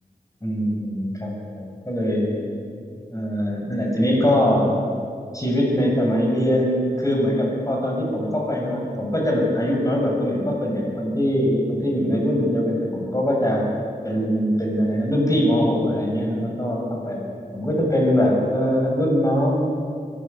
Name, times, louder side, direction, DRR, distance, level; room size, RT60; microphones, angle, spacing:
voice 1, 0.4-2.4 3.1-4.7 5.3-13.7 14.0-17.2 17.5-19.7, equal, 20° left, -1 dB, 7.0 m, -22 dB
23.0 x 15.0 x 8.5 m, 2.3 s
wide cardioid pair, 50°, 16 cm